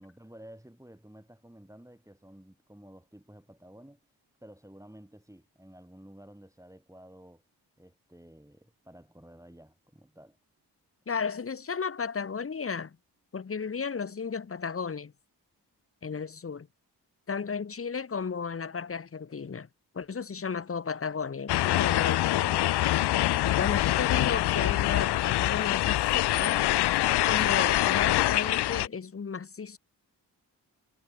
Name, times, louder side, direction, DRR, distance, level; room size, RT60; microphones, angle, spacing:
voice 1, 0.0-4.0 4.4-7.4 7.8-10.4, right 1 dB, 5° right, 4.9 m, -52 dB
voice 2, 11.1-13.0 13.3-15.1 16.0-16.7 17.3-19.7 19.9-22.7 23.4-26.6 27.1-29.8, left 5 dB, 30° left, 1.0 m, -34 dB
sound 1, 21.5-28.9, left 15 dB, 65° left, 0.5 m, -25 dB
supercardioid pair, 40°, 43 cm